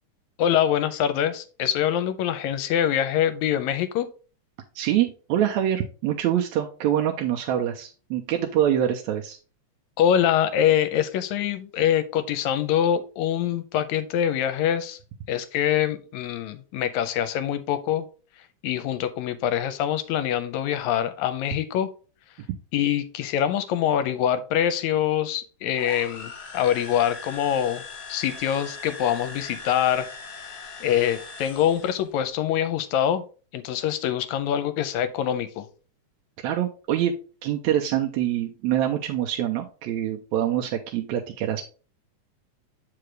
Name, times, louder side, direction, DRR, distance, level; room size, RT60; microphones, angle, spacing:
voice 1, 0.4-4.1 10.0-15.0 15.3-18.1 18.6-21.9 22.7-27.8 28.1-30.1 30.8-33.3 33.5-35.7, left 10 dB, 85° left, 12 dB, 1.9 m, -24 dB
voice 2, 4.8-9.4 36.4-41.6, right 11 dB, 80° right, 2 dB, 1.9 m, -25 dB
sound 1, 25.7-32.1, left 4 dB, 45° left, 1.4 m, -40 dB
7.7 x 4.8 x 3.2 m, 0.36 s
omnidirectional pair, 3.3 m